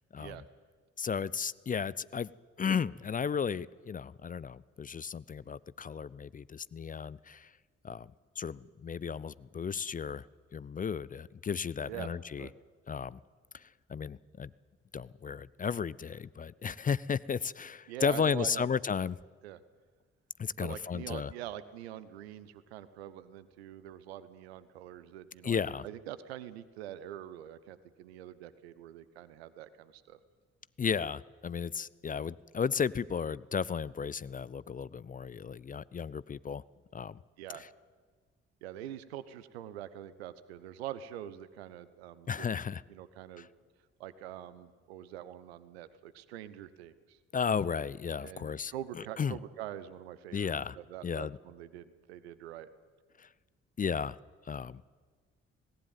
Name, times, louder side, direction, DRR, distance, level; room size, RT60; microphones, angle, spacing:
voice 1, 1.0-2.3 2.6-7.5 7.8-8.1 8.4-10.2 10.5-12.5 12.9-13.2 13.5-14.5 14.9-19.2 20.4-21.3 25.4-25.8 30.8-36.6 36.9-37.2 37.5-37.7 42.3-42.8 43.4-43.5 47.3-49.4 50.3-50.8 51.0-51.4 53.2-53.3 53.8-54.2 54.5-54.8, left 6 dB, 25° left, 21 dB, 0.6 m, -34 dB
voice 2, 17.9-18.7 19.4-19.6 20.6-30.2 37.4-37.6 38.6-42.5 42.9-43.5 44.0-47.2 48.2-52.7, right 12 dB, 75° right, 15 dB, 1.0 m, -44 dB
18.5 x 18.5 x 9.4 m, 1.5 s
figure-of-eight pair, 40°, 31 cm